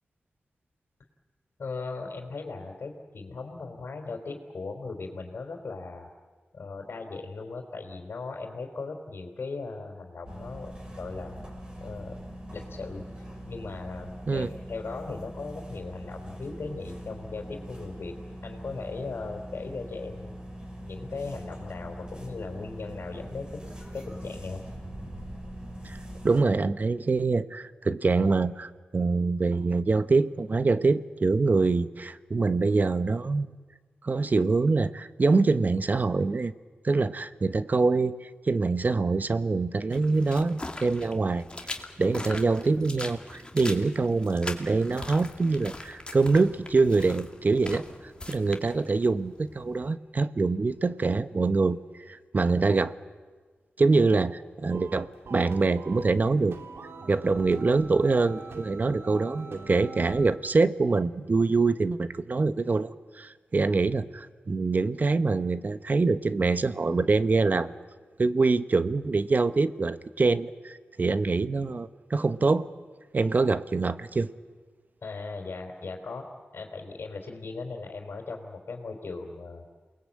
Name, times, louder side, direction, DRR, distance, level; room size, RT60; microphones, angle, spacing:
voice 1, 1.6-6.1 6.5-11.4 11.8-12.2 12.5-18.1 18.4-20.4 20.8-23.6 23.9-24.6 75.0-76.3 76.5-79.7, left 3 dB, 65° left, 1 dB, 3.7 m, -38 dB
sound 1, 10.3-26.4, equal, 25° right, 6.0 m, -42 dB
voice 2, 26.2-33.5 34.0-36.5 36.8-38.1 38.5-41.4 42.0-47.8 48.3-51.8 52.1-52.9 53.8-56.6 57.1-62.9 63.2-67.7 68.2-72.7 73.1-74.3, right 3 dB, 45° right, 13 dB, 0.9 m, -25 dB
sound 2, 39.9-49.9, left 2 dB, 25° left, 2.5 m, -41 dB
sound 3, 54.7-60.4, right 4 dB, 80° right, 1.7 m, -43 dB
28.0 x 20.0 x 8.6 m, 1.5 s
cardioid pair, 65°, 4 cm